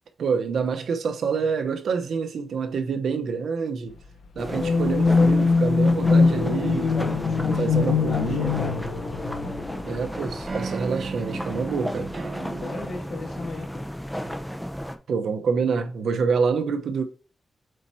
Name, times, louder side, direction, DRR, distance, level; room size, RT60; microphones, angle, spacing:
voice 1, 0.2-3.9 4.3-6.9 7.6-8.7 9.9-12.1 15.1-17.0, right 5 dB, 80° right, 0.9 m, -27 dB
sound 1, 4.4-15.0, equal, 5° left, 0.8 m, -34 dB
sound 2, 4.5-10.5, left 4 dB, 85° left, 0.9 m, -22 dB
voice 2, 6.9-8.8 12.4-13.8, left 3 dB, 65° left, 2.4 m, -36 dB
sound 3, 9.2-9.8 10.5-14.1, right 4 dB, 40° right, 0.9 m, -36 dB
7.9 x 4.4 x 2.8 m
cardioid pair, 100°, 0 cm